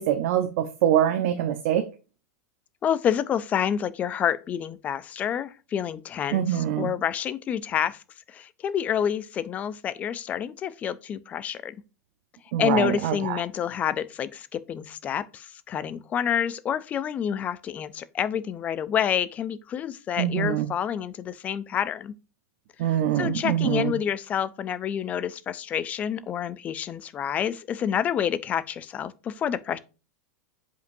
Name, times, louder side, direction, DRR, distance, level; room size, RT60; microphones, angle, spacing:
voice 1, 0.0-1.9 6.3-6.9 12.5-13.4 20.2-20.7 22.8-23.9, right 11 dB, 50° right, 0.8 m, -24 dB
voice 2, 2.8-8.0 8.3-11.8 12.6-22.1 22.8-29.8, left 9 dB, 15° left, 0.4 m, -28 dB
7.9 x 5.2 x 2.6 m
supercardioid pair, 170°, 9 cm